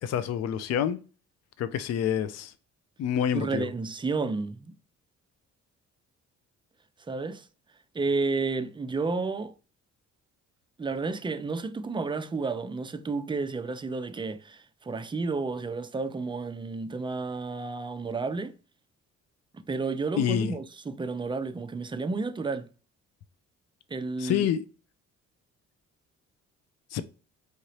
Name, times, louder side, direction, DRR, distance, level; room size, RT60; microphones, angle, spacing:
voice 1, 0.0-1.0 1.6-2.5 3.0-3.7 20.2-20.6 24.2-24.6 26.9-27.0, left 9 dB, 60° left, 0.5 m, -27 dB
voice 2, 3.3-4.7 7.1-7.5 7.9-9.5 10.8-18.6 19.5-22.7 23.9-24.5, right 4 dB, 15° right, 0.4 m, -31 dB
4.8 x 2.7 x 3.1 m
cardioid pair, 90°, 30 cm